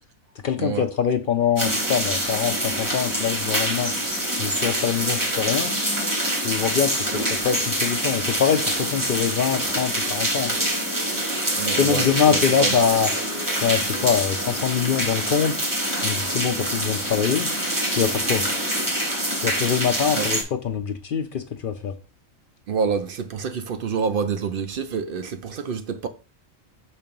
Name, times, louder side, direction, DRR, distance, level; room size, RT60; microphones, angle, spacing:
voice 1, 0.4-3.9 4.4-5.8 6.4-6.9 7.4-10.6 11.8-13.1 13.6-15.5 16.0-17.5 17.9-18.4 19.4-21.9, left 7 dB, 60° left, 0.5 m, -24 dB
sound 1, 1.6-20.4, right 1 dB, 15° right, 1.1 m, -25 dB
voice 2, 11.6-12.8 20.1-20.3 22.7-26.1, right 6 dB, 60° right, 0.5 m, -27 dB
6.5 x 2.8 x 5.2 m
omnidirectional pair, 1.4 m